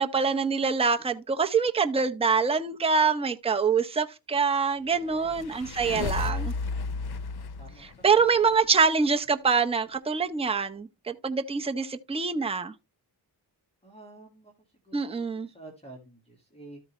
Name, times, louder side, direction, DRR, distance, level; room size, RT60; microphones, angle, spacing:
voice 1, 0.0-6.5 7.8-12.7 14.9-15.5, right 5 dB, 15° right, 0.7 m, -25 dB
sound 1, 5.0-8.6, left 4 dB, 65° left, 0.9 m, -33 dB
voice 2, 5.0-5.5 7.6-8.0 13.8-14.5 14.8-15.0 15.3-16.8, right 2 dB, 15° left, 1.8 m, -49 dB
13.5 x 4.6 x 3.0 m
wide cardioid pair, 110°, 42 cm